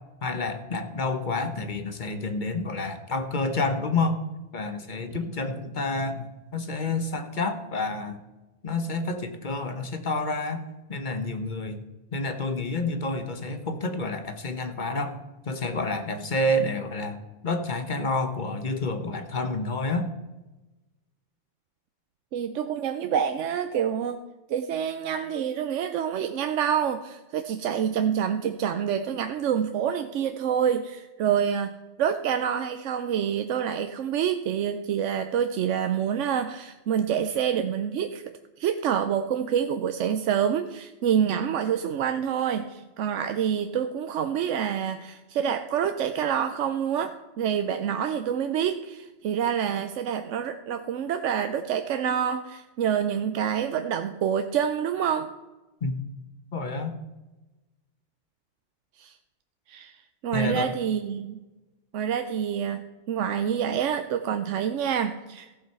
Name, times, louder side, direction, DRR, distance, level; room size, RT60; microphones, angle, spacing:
voice 1, 0.2-4.2 4.5-8.2 8.6-10.6 10.9-11.8 12.1-15.1 15.5-20.1 55.8-55.9 56.5-57.0 60.3-60.7, left 2 dB, 40° left, 7 dB, 1.2 m, -29 dB
voice 2, 22.3-24.2 24.5-31.7 32.0-38.2 38.6-55.3 59.0-59.1 59.7-61.4 61.9-65.5, right 8 dB, 85° right, 8 dB, 1.0 m, -27 dB
14.5 x 7.7 x 5.6 m, 1.1 s
omnidirectional pair, 1.2 m